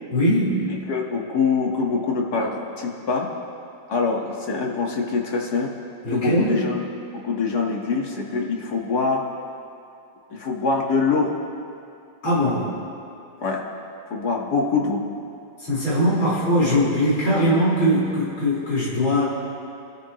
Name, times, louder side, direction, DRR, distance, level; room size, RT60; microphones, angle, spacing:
voice 1, 0.1-0.7 6.0-6.6 12.2-12.7 15.6-19.2, equal, 85° left, -9 dB, 5.6 m, -21 dB
voice 2, 0.7-3.3 3.9-5.7 6.1-6.8 7.1-9.2 10.3-11.3 13.4-13.6 14.1-15.0, left 4 dB, 50° left, -1 dB, 2.2 m, -24 dB
27.5 x 13.5 x 3.1 m, 2.6 s
omnidirectional pair, 2.2 m